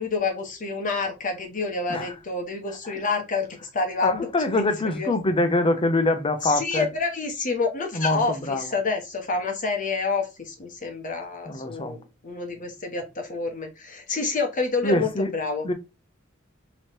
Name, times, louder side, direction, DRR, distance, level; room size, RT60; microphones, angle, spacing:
voice 1, 0.0-5.1 6.4-15.7, left 4 dB, 40° left, 1.0 m, -28 dB
voice 2, 4.0-6.9 7.9-8.7 11.5-12.0 14.8-15.3 15.6-15.7, left 2 dB, 25° left, 0.7 m, -24 dB
3.1 x 3.0 x 4.4 m
head